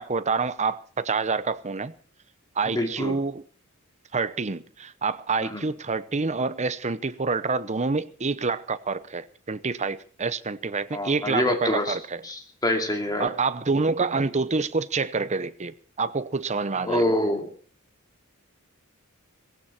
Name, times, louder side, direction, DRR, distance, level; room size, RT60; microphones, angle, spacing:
voice 1, 0.0-1.9 2.6-3.4 4.1-12.2 13.2-17.0, right 4 dB, 30° right, 0.8 m, -27 dB
voice 2, 2.8-3.2 5.4-5.6 10.9-12.0 12.2-13.3 16.8-17.5, left 1 dB, 15° left, 2.6 m, -26 dB
18.0 x 16.5 x 4.3 m
head